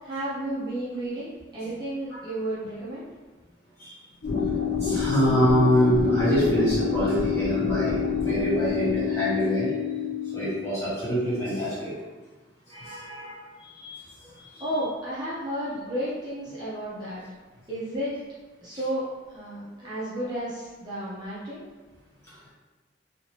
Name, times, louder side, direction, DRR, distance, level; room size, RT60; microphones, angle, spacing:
voice 1, 0.0-3.1 14.6-17.2 17.7-18.1 18.6-21.6, right 1 dB, 20° right, -11 dB, 0.7 m, -32 dB
sound 1, 4.2-10.8, left 6 dB, 60° left, 0.7 m, -27 dB
voice 2, 4.8-9.7 10.3-11.9 12.7-14.0 14.4-14.6, equal, 15° left, -11 dB, 1.2 m, -25 dB
2.8 x 2.8 x 3.0 m, 1.3 s
head